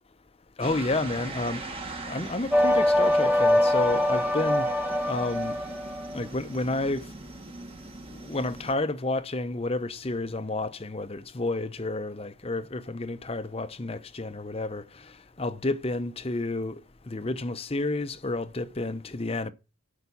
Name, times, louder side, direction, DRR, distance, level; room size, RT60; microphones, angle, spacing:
voice 1, 0.6-1.6 2.1-4.7 5.1-5.6 6.1-7.0 8.3-14.8 15.4-16.8 17.1-19.5, left 2 dB, 30° left, 0.7 m, -30 dB
sound 1, 0.6-8.7, right 2 dB, 25° right, 1.5 m, -41 dB
sound 2, 2.5-6.2, left 1 dB, 10° right, 1.1 m, -23 dB
12.5 x 5.1 x 7.0 m
head